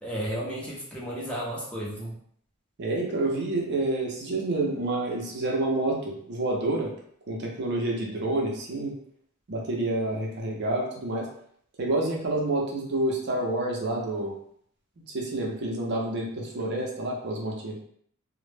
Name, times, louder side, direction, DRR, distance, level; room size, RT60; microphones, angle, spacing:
voice 1, 0.0-2.2, equal, 5° left, -7 dB, 0.7 m, -33 dB
voice 2, 2.8-6.9 7.3-9.0 9.5-11.3 11.8-14.4 15.1-17.8, right 2 dB, 55° right, -1 dB, 0.5 m, -28 dB
2.0 x 2.0 x 3.2 m, 0.64 s
head